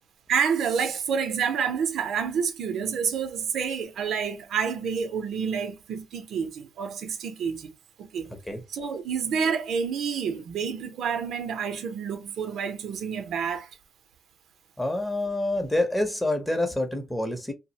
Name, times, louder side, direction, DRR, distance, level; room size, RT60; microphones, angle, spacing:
voice 1, 0.3-7.7 8.0-8.3 8.7-13.7, right 6 dB, 70° right, 0.5 m, -28 dB
voice 2, 14.8-17.5, left 1 dB, 10° left, 0.7 m, -27 dB
2.3 x 2.0 x 2.7 m
cardioid pair, 90°, 0 cm